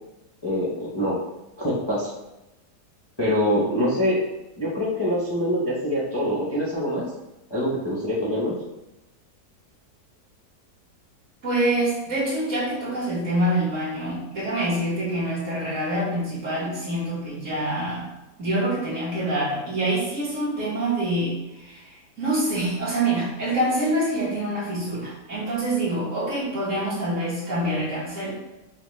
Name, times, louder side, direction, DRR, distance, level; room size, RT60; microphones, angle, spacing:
voice 1, 0.4-1.2 1.6-2.1 3.2-4.2 4.6-7.0 7.5-8.5, equal, 30° left, -7 dB, 0.5 m, -24 dB
voice 2, 11.4-18.1 18.4-28.4, right 1 dB, 50° right, -7 dB, 1.8 m, -26 dB
5.6 x 2.3 x 3.1 m, 0.99 s
omnidirectional pair, 1.7 m